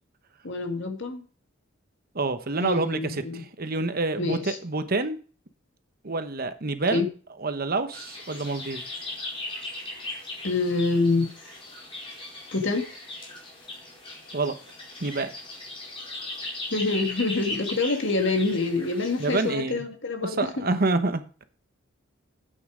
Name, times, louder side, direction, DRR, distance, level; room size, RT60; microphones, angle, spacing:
voice 1, 0.4-1.2 2.6-3.4 4.2-4.6 6.9-7.1 10.4-11.3 12.5-12.8 16.7-20.7, left 3 dB, 65° left, 2.1 m, -26 dB
voice 2, 2.1-5.2 6.0-7.1 7.4-8.8 14.3-14.5 15.0-15.3 19.2-19.8 20.2-21.4, right 3 dB, 50° right, 1.0 m, -27 dB
sound 1, 7.9-19.5, left 2 dB, 25° left, 4.8 m, -38 dB
10.5 x 8.7 x 5.0 m
head